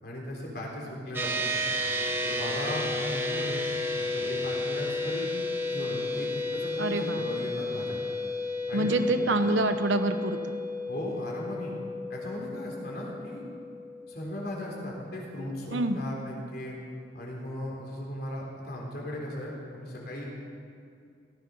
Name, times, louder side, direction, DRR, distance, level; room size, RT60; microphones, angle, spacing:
voice 1, 0.0-1.3 2.2-3.6 4.0-5.3 5.7-8.0 8.7-9.0 9.3-9.4 10.9-11.7 12.1-13.4 14.1-16.8 17.1-20.3, left 1 dB, 55° left, -2 dB, 3.8 m, -37 dB
sound 1, 1.1-14.8, left 2 dB, 10° right, 1.3 m, -32 dB
voice 2, 6.8-7.2 8.7-10.6 15.7-16.0, right 2 dB, 80° right, 9 dB, 1.0 m, -27 dB
16.5 x 15.0 x 5.5 m, 2.4 s
head